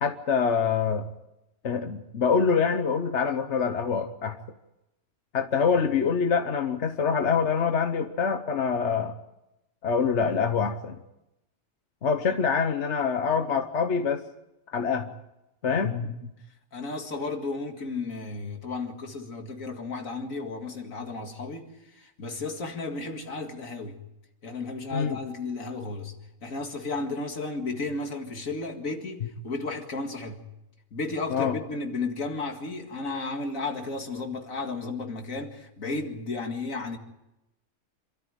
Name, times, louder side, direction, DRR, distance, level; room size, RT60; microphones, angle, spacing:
voice 1, 0.0-1.1 1.6-4.4 5.3-9.1 9.8-11.0 12.0-14.2 14.7-15.1 15.6-16.3 24.9-25.2 31.3-31.6, left 6 dB, 60° left, 1.3 m, -25 dB
voice 2, 16.7-24.0 24.4-26.1 26.4-30.4 30.9-37.0, left 3 dB, 75° left, 2.5 m, -33 dB
27.0 x 13.5 x 9.1 m
omnidirectional pair, 1.4 m